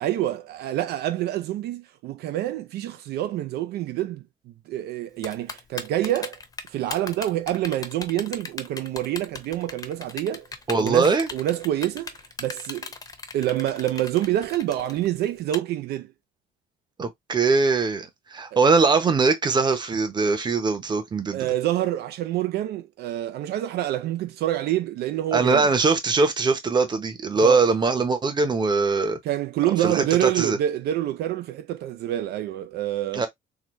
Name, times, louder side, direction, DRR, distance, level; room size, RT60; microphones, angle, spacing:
voice 1, 0.0-4.2 4.7-6.4 6.7-10.5 10.8-12.1 12.4-12.9 13.3-16.1 21.3-25.6 27.4-27.7 29.2-33.3, right 13 dB, 75° right, 0.5 m, -27 dB
Typing, 5.2-15.6, left 4 dB, 20° left, 0.7 m, -36 dB
voice 2, 10.7-11.3 17.0-21.5 25.3-29.2 29.8-30.6 33.1-33.3, right 4 dB, 25° right, 0.8 m, -21 dB
3.9 x 2.2 x 3.1 m
cardioid pair, 110°, 17 cm